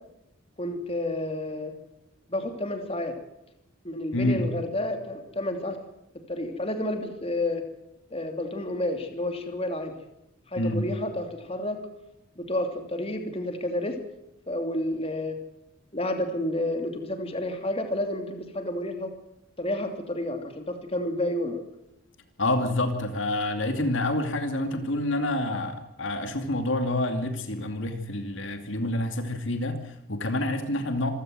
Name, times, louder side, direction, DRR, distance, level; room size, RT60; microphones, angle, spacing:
voice 1, 0.6-1.7 2.3-3.2 3.8-5.8 6.1-7.6 8.1-10.0 10.5-11.8 12.4-14.0 14.5-15.4 15.9-19.1 19.6-21.6, left 1 dB, 25° left, 5 dB, 2.9 m, -30 dB
voice 2, 4.1-4.5 10.6-10.9 22.4-31.1, left 1 dB, 60° left, 6 dB, 2.5 m, -28 dB
26.5 x 16.5 x 7.9 m, 0.86 s
head